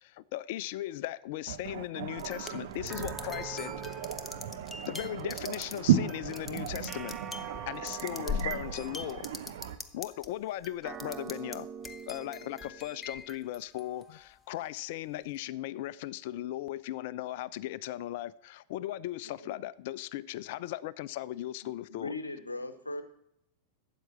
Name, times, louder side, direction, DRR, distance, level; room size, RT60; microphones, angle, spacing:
voice 1, 0.0-3.7 4.9-6.1 6.4-7.2 7.7-9.3 9.9-11.7 12.1-22.2, left 14 dB, 50° left, 0.3 m, -37 dB
voice 2, 1.5-9.8, right 9 dB, 55° right, 1.0 m, -34 dB
sound 1, 2.2-10.3 10.6-11.6 11.8-14.2, left 5 dB, 15° left, 0.8 m, -42 dB
sound 2, 2.9-5.5 6.9-9.4 10.8-13.4, right 7 dB, 25° right, 0.5 m, -45 dB
voice 3, 21.9-23.0, left 2 dB, 80° left, 0.9 m, -38 dB
12.5 x 8.3 x 4.4 m
figure-of-eight pair, 90°, 0 cm